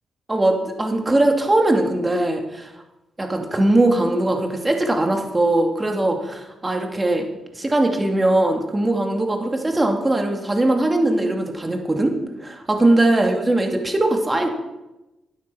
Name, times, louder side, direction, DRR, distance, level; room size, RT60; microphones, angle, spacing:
voice 1, 0.3-2.7 3.2-7.3 7.5-12.2 12.4-14.5, right 2 dB, 20° right, 3 dB, 2.6 m, -20 dB
12.5 x 9.3 x 6.3 m, 1.0 s
cardioid pair, 65°, 0 cm